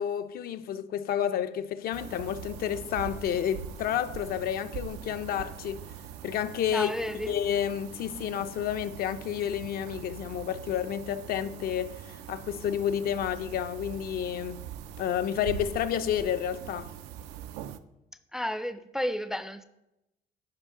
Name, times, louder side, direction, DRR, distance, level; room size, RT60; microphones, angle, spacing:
voice 1, 0.0-5.8 6.2-6.9 7.3-14.6 15.0-16.9, left 9 dB, 65° left, 0.5 m, -30 dB
sound 1, 1.9-17.8, right 9 dB, 90° right, 0.4 m, -42 dB
voice 2, 6.7-7.4 18.3-19.6, equal, 5° right, 0.4 m, -32 dB
10.0 x 5.1 x 3.7 m
cardioid pair, 110°, 17 cm